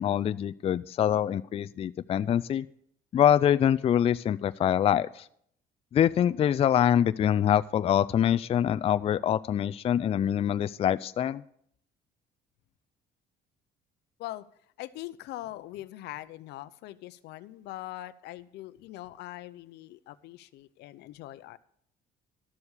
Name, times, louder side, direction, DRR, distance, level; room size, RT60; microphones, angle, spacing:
voice 1, 0.0-2.7 3.1-5.3 5.9-11.4, left 10 dB, 35° left, 14 dB, 0.4 m, -25 dB
voice 2, 14.8-21.6, left 16 dB, 80° left, 14 dB, 0.7 m, -42 dB
12.5 x 7.1 x 6.6 m, 0.67 s
cardioid pair, 110°, 17 cm